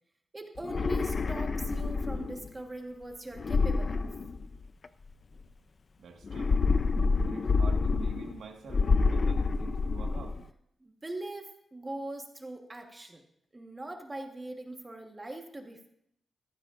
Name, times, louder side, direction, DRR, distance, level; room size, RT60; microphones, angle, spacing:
voice 1, 0.3-4.1 10.8-13.2 13.5-15.9, right 2 dB, 15° right, 3 dB, 1.3 m, -41 dB
sound 1, 0.6-2.5 3.4-4.9 6.2-8.4 8.7-10.4, left 4 dB, 35° left, 0.5 m, -28 dB
voice 2, 6.0-6.6 7.2-10.4, right 5 dB, 85° right, 3 dB, 1.6 m, -47 dB
18.0 x 14.5 x 2.5 m, 0.74 s
wide cardioid pair, 175°, 0 cm